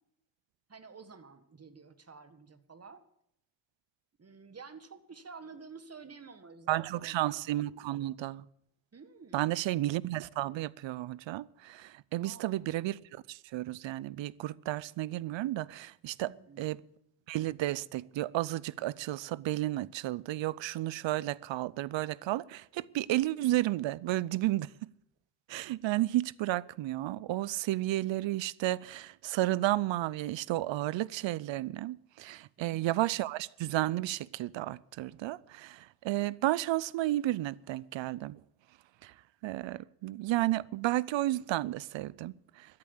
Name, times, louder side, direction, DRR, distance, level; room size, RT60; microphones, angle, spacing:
voice 1, 0.7-3.0 4.2-7.5 8.9-9.5 12.2-12.6 16.2-16.8, right 5 dB, 35° right, 1.8 m, -51 dB
voice 2, 6.7-8.4 9.3-13.0 13.3-16.8 17.3-24.7 25.5-38.4 39.0-39.1 39.4-42.7, right 15 dB, 85° right, 0.6 m, -32 dB
13.5 x 11.0 x 8.2 m
cardioid pair, 70°, 44 cm